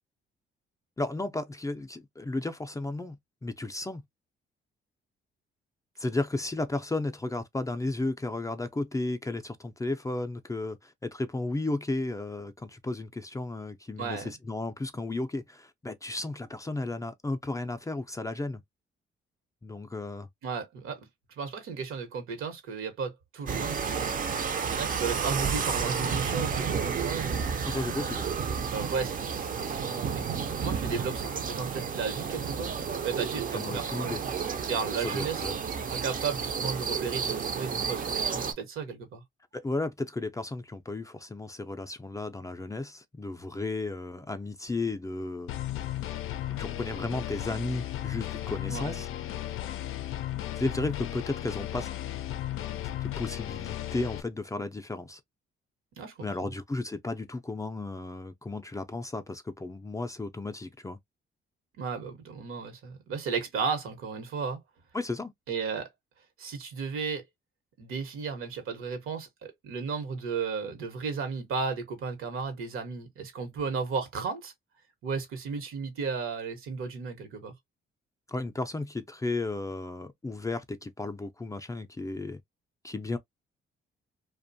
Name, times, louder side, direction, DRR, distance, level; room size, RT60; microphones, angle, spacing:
voice 1, 1.0-4.0 6.0-18.6 19.6-20.3 27.6-28.2 33.5-34.6 35.0-35.6 39.5-45.5 46.6-49.1 50.6-51.9 52.5-55.2 56.2-61.0 64.9-65.3 78.3-82.4 82.8-83.2, left 2 dB, 15° left, 0.4 m, -34 dB
voice 2, 14.0-14.3 20.4-21.0 21.4-24.2 24.7-27.7 28.7-30.2 30.6-32.8 33.0-34.2 34.7-35.5 35.9-39.2 48.6-49.0 56.0-56.5 61.8-64.6 65.5-65.9 66.4-67.2 67.8-74.5 75.0-77.5, right 5 dB, 80° right, 1.0 m, -34 dB
sound 1, 23.5-38.5, right 6 dB, 40° right, 0.5 m, -31 dB
sound 2, 45.5-54.2, left 13 dB, 75° left, 0.4 m, -35 dB
2.5 x 2.1 x 2.6 m
cardioid pair, 85°, 21 cm